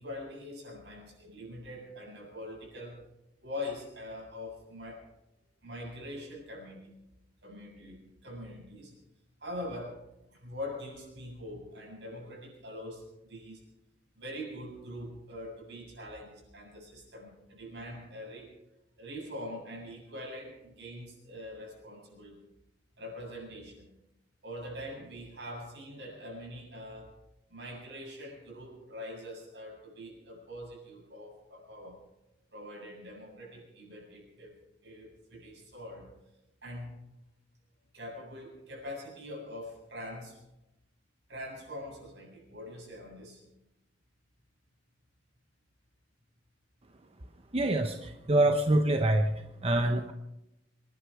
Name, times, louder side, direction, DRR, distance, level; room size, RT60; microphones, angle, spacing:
voice 1, 0.0-3.0 3.4-5.1 5.6-6.9 7.4-9.0 9.4-13.6 14.2-18.5 19.0-22.4 23.0-23.9 24.4-27.1 27.5-32.0 32.5-36.1 36.6-37.0 37.9-40.4 41.3-43.4, left 1 dB, 65° right, 0 dB, 7.5 m, -43 dB
voice 2, 47.5-50.1, right 1 dB, 30° right, 5 dB, 0.9 m, -26 dB
25.5 x 11.5 x 4.9 m, 0.90 s
head